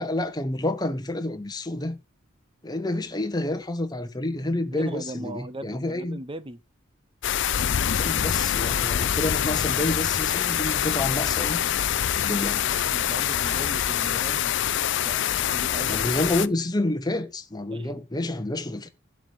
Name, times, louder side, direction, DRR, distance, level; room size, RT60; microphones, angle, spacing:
voice 1, 0.0-2.0 2.6-6.2 8.0-11.6 12.2-12.6 15.9-18.9, left 1 dB, 20° left, 1.3 m, -29 dB
voice 2, 4.7-6.6 12.7-14.5 15.0-16.6 17.7-18.0, right 1 dB, 25° right, 0.7 m, -39 dB
sound 1, 7.2-16.5, left 10 dB, 60° left, 0.5 m, -25 dB
11.5 x 4.7 x 8.4 m
head